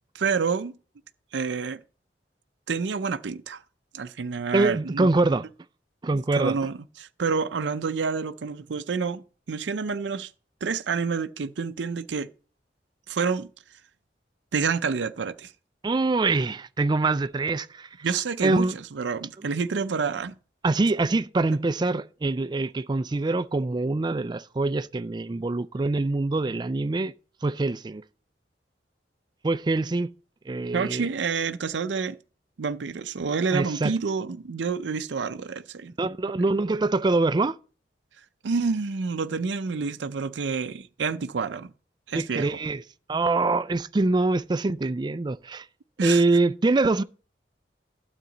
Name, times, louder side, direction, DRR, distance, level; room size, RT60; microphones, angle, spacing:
voice 1, 0.1-0.8 1.3-1.8 2.7-3.6 3.9-5.1 6.1-10.3 10.6-12.3 13.1-13.5 14.5-15.5 18.0-20.3 30.7-32.2 32.6-35.9 38.4-41.7 42.1-42.5 46.0-46.2, right 5 dB, 90° right, 0.5 m, -28 dB
voice 2, 4.5-5.4 6.0-6.6 15.8-17.9 18.4-18.8 20.6-27.1 27.4-28.0 29.4-30.1 30.5-31.1 33.5-33.9 36.0-37.6 42.1-42.8 43.1-45.7 46.0-47.0, right 3 dB, 25° right, 0.4 m, -24 dB
12.0 x 8.0 x 3.9 m
head